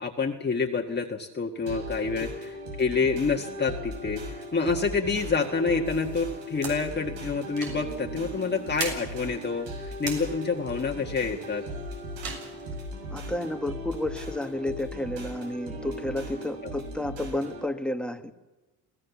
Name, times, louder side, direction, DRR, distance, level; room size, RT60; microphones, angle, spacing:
voice 1, 0.0-11.6 16.6-16.7, left 4 dB, 25° left, 1 dB, 1.6 m, -28 dB
sound 1, 1.7-17.7, equal, 90° right, 6.6 m, -38 dB
sound 2, 5.8-13.1, right 5 dB, 70° right, 7.2 m, -42 dB
voice 2, 13.1-18.2, left 1 dB, ahead, 7 dB, 1.5 m, -31 dB
27.5 x 17.5 x 7.1 m, 1.1 s
cardioid pair, 100°, 43 cm